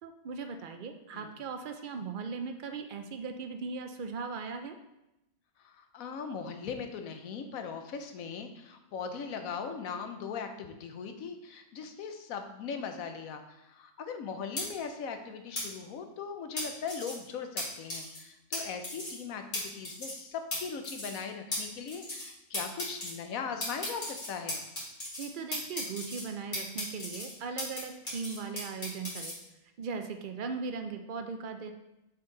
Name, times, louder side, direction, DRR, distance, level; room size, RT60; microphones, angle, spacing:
voice 1, 0.0-4.8 25.2-29.3 29.8-31.7, right 5 dB, 80° right, 6 dB, 0.4 m, -38 dB
voice 2, 5.6-24.6, left 6 dB, 75° left, 7 dB, 1.1 m, -39 dB
sound 1, 14.6-14.7 15.6-15.7 16.6-17.1 17.6-17.7 17.9-18.2 18.5-18.6 18.8-19.2 19.5-19.6 19.8-20.2 20.5-20.6 20.8-21.2 21.5-21.6 21.9-22.3 22.5-23.1 23.6-25.3 25.5-26.2 26.5-27.8 28.1-29.3, left 1 dB, 35° left, 2.5 m, -36 dB
7.3 x 4.5 x 3.8 m, 0.91 s
omnidirectional pair, 1.5 m